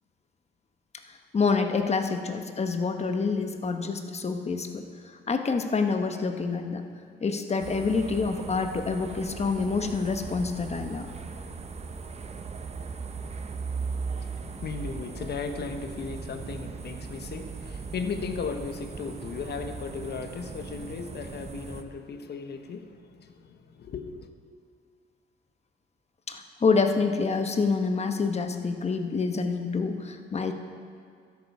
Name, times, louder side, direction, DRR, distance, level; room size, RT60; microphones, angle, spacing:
voice 1, 1.1-4.8 5.3-6.8 7.2-11.1 26.3-30.5, left 4 dB, 35° left, 6 dB, 1.0 m, -27 dB
sound 1, 7.6-21.8, right 5 dB, 30° right, 0.8 m, -38 dB
voice 2, 14.2-24.3, left 5 dB, 55° left, 7 dB, 1.0 m, -36 dB
12.5 x 10.5 x 4.8 m, 2.2 s
cardioid pair, 90°, 20 cm